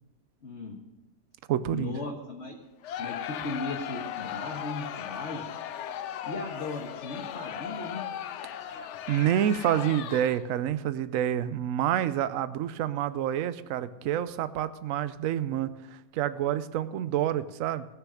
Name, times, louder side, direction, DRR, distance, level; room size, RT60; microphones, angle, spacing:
voice 1, 0.4-0.8 1.7-2.5 3.0-5.5 6.2-8.0, left 3 dB, 45° left, -2 dB, 1.6 m, -37 dB
voice 2, 1.5-2.0 8.7-17.9, right 10 dB, 65° right, 14 dB, 0.9 m, -28 dB
Crowd, 2.8-10.6, left 10 dB, 70° left, 0.6 m, -37 dB
18.5 x 6.5 x 6.3 m, 1.0 s
omnidirectional pair, 1.7 m